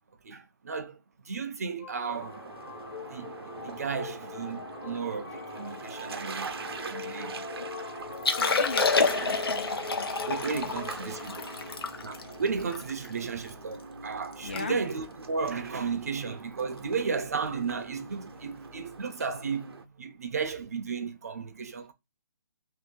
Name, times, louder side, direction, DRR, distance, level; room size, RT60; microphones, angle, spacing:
voice 1, 0.2-1.0 1.3-2.4 3.1-7.4 10.3-11.4 12.0-21.9, right 5 dB, 40° right, 0.5 m, -34 dB
sound 1, 1.8-13.6, left 4 dB, 55° left, 1.2 m, -42 dB
sound 2, 2.1-19.8, right 4 dB, 80° right, 0.7 m, -43 dB
Liquid, 8.1-13.5 14.0-14.1 14.3-14.6 14.9-15.2 15.8-16.0 17.4-17.5, left 4 dB, 75° left, 0.8 m, -29 dB
voice 2, 8.3-9.4 14.4-14.8, left 3 dB, 25° left, 0.4 m, -36 dB
3.0 x 2.7 x 3.6 m
hypercardioid pair, 175°, 13 cm